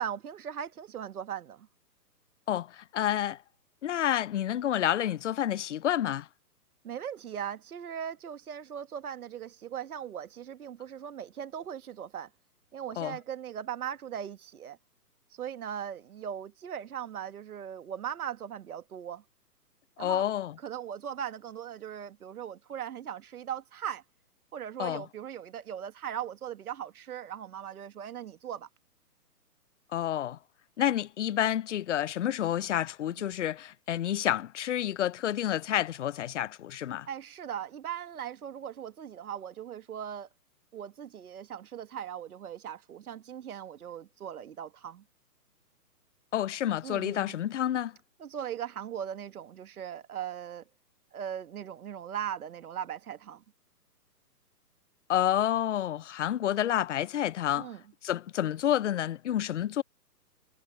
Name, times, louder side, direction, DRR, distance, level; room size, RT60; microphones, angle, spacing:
voice 1, 0.0-1.7 6.8-12.3 12.7-14.8 15.4-19.2 20.0-20.3 20.6-24.0 24.5-28.7 37.1-40.3 40.7-45.0 46.8-47.4 48.2-50.6 51.1-53.4 57.6-57.8, right 9 dB, 60° right, 1.9 m, -39 dB
voice 2, 2.5-3.4 3.8-6.3 13.0-13.2 20.0-20.5 24.8-25.0 29.9-30.4 30.8-37.1 46.3-47.9 55.1-57.7 58.0-59.8, left 11 dB, 50° left, 0.5 m, -29 dB
hypercardioid pair, 150°, 49 cm